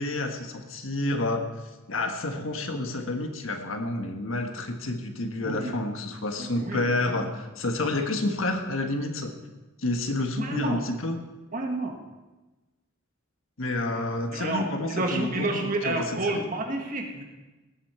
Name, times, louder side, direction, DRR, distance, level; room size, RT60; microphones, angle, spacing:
voice 1, 0.0-1.5 1.9-9.4 9.8-11.2 13.6-16.4, left 2 dB, 85° left, 5 dB, 1.4 m, -29 dB
voice 2, 5.4-5.7 6.4-7.2 10.4-10.8 11.5-12.0 13.8-14.0 14.3-17.2, right 2 dB, 40° right, 2 dB, 1.6 m, -30 dB
17.5 x 8.2 x 4.4 m, 1.1 s
head